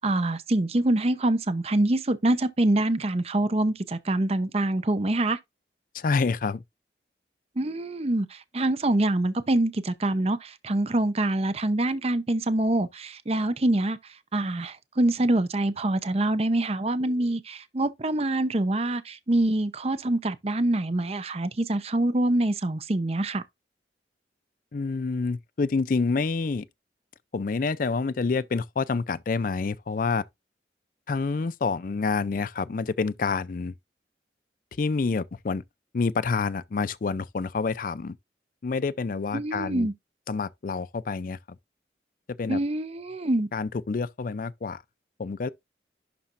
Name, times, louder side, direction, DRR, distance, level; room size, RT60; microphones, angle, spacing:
voice 1, 0.0-5.4 7.6-14.0 14.3-23.4 39.3-39.9 42.5-43.5, right 1 dB, 35° right, 0.7 m, -25 dB
voice 2, 5.9-6.6 24.7-26.7 27.3-30.2 31.1-33.7 34.8-35.6 35.9-38.2 38.6-39.9 40.3-41.4 42.4-42.6 43.5-44.8 45.2-45.5, left 4 dB, 50° left, 0.4 m, -27 dB
11.5 x 4.2 x 2.5 m
head